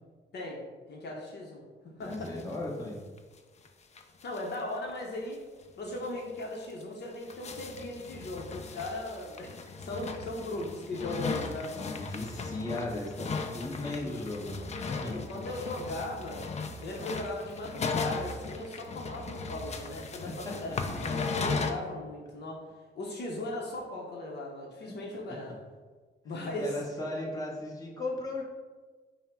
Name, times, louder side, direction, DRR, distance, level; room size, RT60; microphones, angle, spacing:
voice 1, 0.9-1.6 2.0-2.3 4.2-5.4 5.8-11.8 14.0-14.3 15.0-16.4 16.8-20.8 21.0-22.6 22.9-25.6 26.2-26.7, left 1 dB, 55° left, -1 dB, 0.8 m, -38 dB
voice 2, 2.0-3.0 11.7-15.2 20.4-20.6 24.8-25.0 26.3-28.4, left 2 dB, 20° left, -3 dB, 1.1 m, -37 dB
sound 1, 2.1-2.6 2.9-3.0 3.2-3.3 3.7-3.8 4.0-4.6 4.9-5.0 5.3-5.4 5.9-6.1 6.6-21.7, left 4 dB, 35° left, 0.5 m, -37 dB
5.5 x 2.1 x 4.5 m, 1.4 s
cardioid pair, 90°, 20 cm